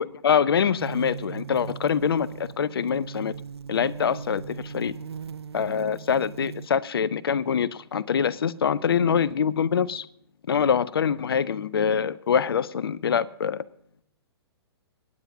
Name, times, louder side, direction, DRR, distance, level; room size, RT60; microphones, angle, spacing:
voice 1, 0.0-3.3 3.7-5.0 5.5-10.1 10.5-13.6, left 7 dB, 65° left, 18 dB, 0.5 m, -24 dB
sound 1, 0.8-6.7, right 6 dB, 75° right, 0.4 m, -39 dB
25.0 x 9.5 x 2.7 m, 0.71 s
figure-of-eight pair, 115°, 14 cm